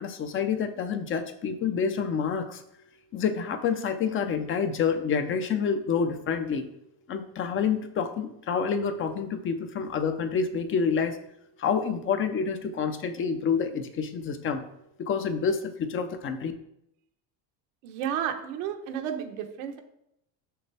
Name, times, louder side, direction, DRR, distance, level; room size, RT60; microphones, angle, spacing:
voice 1, 0.0-2.6 3.1-6.7 7.1-11.2 11.6-14.6 15.0-16.5, left 6 dB, 35° left, 9 dB, 0.6 m, -28 dB
voice 2, 17.8-19.8, right 9 dB, 85° right, 5 dB, 1.1 m, -32 dB
6.7 x 6.5 x 3.4 m, 0.79 s
cardioid pair, 150°, 37 cm